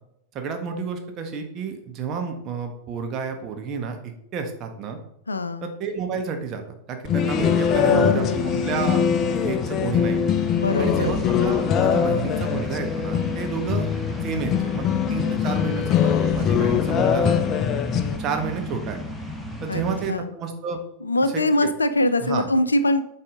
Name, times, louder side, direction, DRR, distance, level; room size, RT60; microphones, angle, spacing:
voice 1, 0.3-5.0 5.6-8.3 8.6-9.1 9.3-10.2 10.8-13.9 14.2-17.6 18.2-19.0 19.6-20.8 21.2-21.7 22.2-22.5, right 6 dB, 35° right, 4 dB, 1.3 m, -30 dB
voice 2, 5.3-5.7 7.9-8.7 10.6-11.2 19.7-19.8 20.1-20.3 21.0-23.0, left 1 dB, 80° left, 12 dB, 0.5 m, -23 dB
sound 1, 7.0-18.2, left 8 dB, 30° left, 0.5 m, -23 dB
sound 2, 7.2-20.1, left 1 dB, 5° left, 1.2 m, -33 dB
8.7 x 4.9 x 3.6 m, 0.79 s
figure-of-eight pair, 90°, 0 cm